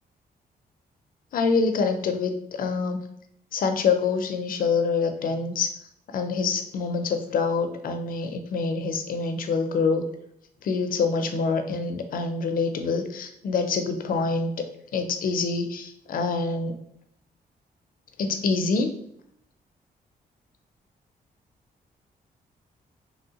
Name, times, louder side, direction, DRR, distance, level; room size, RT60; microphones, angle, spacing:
voice 1, 1.3-3.0 3.5-5.7 6.1-10.0 10.6-14.5 14.9-16.7 18.2-18.9, left 4 dB, 60° left, 7 dB, 0.4 m, -26 dB
2.9 x 2.7 x 2.8 m, 0.72 s
wide cardioid pair, 155°, 17 cm